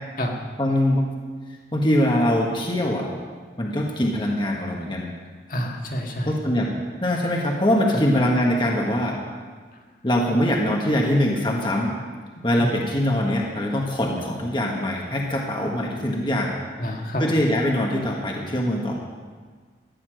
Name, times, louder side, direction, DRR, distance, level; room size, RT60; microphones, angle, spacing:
voice 1, 0.6-1.1 1.7-3.1 3.6-5.1 6.3-6.7 7.0-9.2 10.0-11.9 12.4-16.5 17.2-18.9, left 1 dB, 25° left, -1 dB, 1.4 m, -22 dB
voice 2, 5.5-6.3 7.9-8.0 12.6-12.8 16.8-17.2, equal, 50° left, 1 dB, 1.8 m, -27 dB
14.0 x 9.7 x 6.4 m, 1.5 s
head